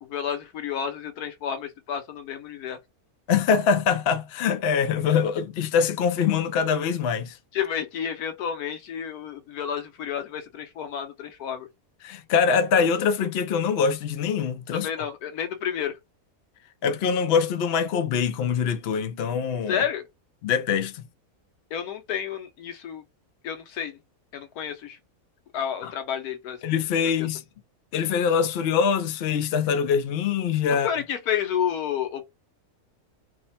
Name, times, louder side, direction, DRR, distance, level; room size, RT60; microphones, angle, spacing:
voice 1, 0.0-2.8 7.5-11.7 14.7-16.0 19.7-20.1 21.7-23.0 23.4-24.0 24.3-25.0 25.5-26.6 27.0-27.1 30.7-32.3, left 8 dB, 85° left, 1.2 m, -30 dB
voice 2, 3.3-7.4 12.0-14.9 16.8-19.8 20.4-21.0 25.8-25.9 26.6-27.4 27.9-30.9, left 6 dB, 60° left, 0.7 m, -24 dB
3.1 x 2.1 x 4.1 m
omnidirectional pair, 1.6 m